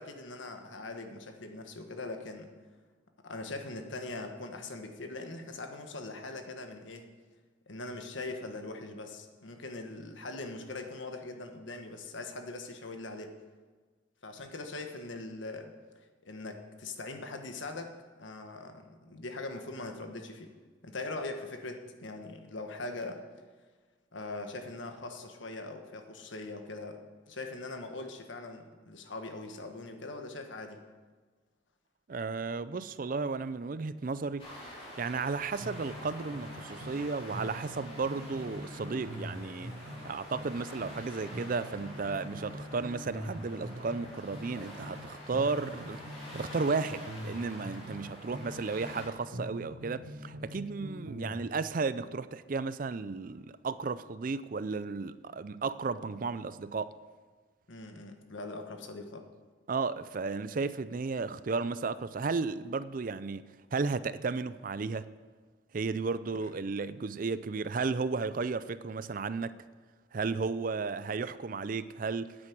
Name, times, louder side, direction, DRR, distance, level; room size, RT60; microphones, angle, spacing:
voice 1, 0.0-2.5 3.2-7.1 7.7-13.3 14.2-15.7 16.2-20.5 20.8-23.2 24.1-27.0 27.3-30.8 57.7-59.3 66.4-66.5, left 2 dB, 80° left, 1.4 m, -41 dB
voice 2, 32.1-34.4 35.0-39.7 40.0-46.0 46.3-56.9 59.7-65.1 65.7-69.5 70.1-72.4, right 4 dB, 45° right, 0.4 m, -34 dB
sound 1, 34.4-49.1, left 1 dB, 30° left, 3.8 m, -47 dB
sound 2, 35.6-37.1 37.3-41.0 41.3-45.0 45.3-49.0 49.3-51.4, equal, 85° right, 1.4 m, -43 dB
10.5 x 8.7 x 7.7 m
head